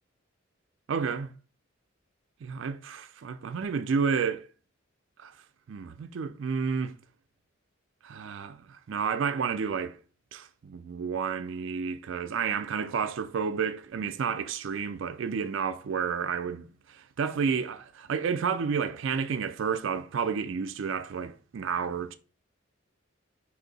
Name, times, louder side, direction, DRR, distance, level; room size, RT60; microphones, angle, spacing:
voice 1, 0.9-1.3 2.4-4.5 5.2-5.3 5.7-6.9 8.0-10.0 10.3-22.2, right 6 dB, 65° right, 0.4 m, -31 dB
4.2 x 2.7 x 3.9 m
head